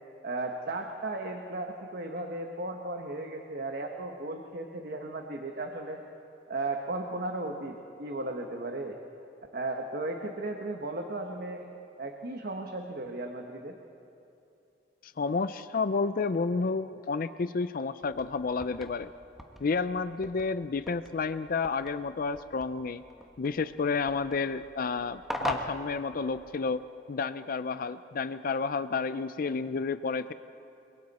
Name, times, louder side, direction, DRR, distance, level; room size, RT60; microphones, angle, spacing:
voice 1, 0.2-6.0 6.5-9.0 9.5-11.7 12.0-13.8, right 2 dB, 55° right, 3 dB, 1.2 m, -35 dB
voice 2, 15.0-19.1 19.6-23.0 23.4-26.8 27.1-30.3, left 4 dB, 50° left, 13 dB, 0.4 m, -31 dB
sound 1, 18.0-26.7, equal, ahead, 1.4 m, -42 dB
30.0 x 22.5 x 4.2 m, 2.8 s
head